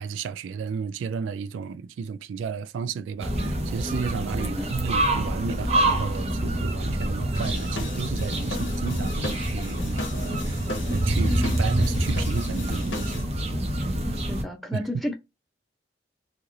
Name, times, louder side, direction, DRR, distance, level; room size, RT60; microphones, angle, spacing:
voice 1, 0.0-10.6 10.9-13.3 14.7-14.8, right 6 dB, 90° right, 0.3 m, -33 dB
sound 1, 3.2-14.4, right 1 dB, 35° right, 0.7 m, -26 dB
voice 2, 4.4-4.7 14.3-15.1, left 1 dB, ahead, 0.7 m, -32 dB
sound 2, 7.3-13.2, left 2 dB, 90° left, 0.9 m, -36 dB
3.1 x 2.5 x 2.6 m
head